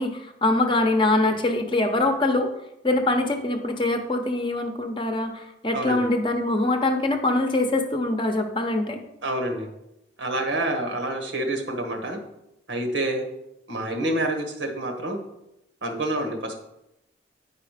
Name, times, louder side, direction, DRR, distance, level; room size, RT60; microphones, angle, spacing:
voice 1, 0.0-2.5 2.8-9.0, left 2 dB, 25° left, 5 dB, 0.8 m, -23 dB
voice 2, 5.7-6.0 9.2-9.7 10.2-12.2 12.7-13.3 13.7-15.2 15.8-16.6, right 1 dB, 80° right, 4 dB, 1.5 m, -27 dB
9.5 x 4.9 x 5.0 m, 0.88 s
head